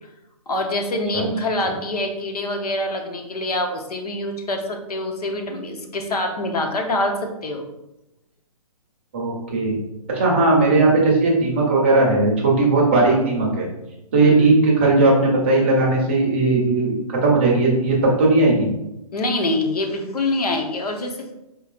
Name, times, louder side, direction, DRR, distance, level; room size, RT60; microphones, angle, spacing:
voice 1, 0.5-7.7 10.4-10.5 14.2-14.6 19.1-21.3, left 1 dB, 85° left, 4 dB, 0.9 m, -25 dB
voice 2, 9.1-9.8 10.1-13.7 14.1-18.7, right 2 dB, 20° right, -3 dB, 0.7 m, -17 dB
4.8 x 2.9 x 2.4 m, 0.90 s
hypercardioid pair, 175°, 19 cm